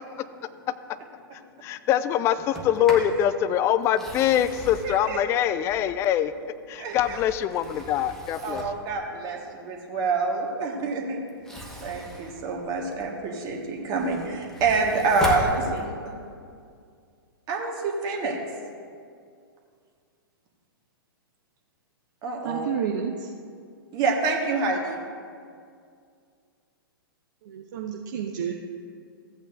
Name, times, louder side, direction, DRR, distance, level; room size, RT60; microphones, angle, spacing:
voice 1, 1.6-6.3 6.7-8.6, left 10 dB, 20° left, 13 dB, 0.3 m, -24 dB
Sliding door, 2.4-3.2 3.8-6.2 6.7-8.9 11.3-13.2 13.7-16.2, equal, 5° left, 1.1 m, -37 dB
voice 2, 4.8-5.2 6.8-7.2 8.4-11.2 11.8-16.2 17.5-18.4 22.2-22.7 23.9-25.0, right 3 dB, 30° right, 1 dB, 1.4 m, -27 dB
voice 3, 22.4-23.3 27.5-28.5, right 8 dB, 50° right, 2 dB, 0.6 m, -30 dB
15.0 x 8.4 x 2.6 m, 2.2 s
figure-of-eight pair, 110°, 13 cm